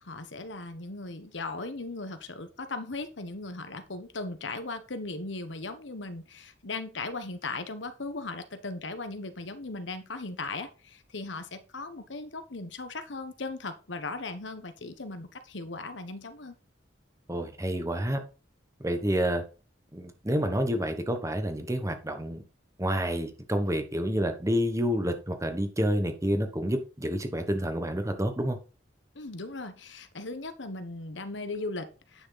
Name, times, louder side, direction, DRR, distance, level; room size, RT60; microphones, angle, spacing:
voice 1, 0.0-16.5 29.1-32.3, left 3 dB, 80° left, 10 dB, 1.2 m, -38 dB
voice 2, 17.3-18.2 18.8-19.4 19.9-22.4 22.8-28.6, equal, 15° right, 6 dB, 1.3 m, -29 dB
9.6 x 6.4 x 4.1 m, 0.34 s
head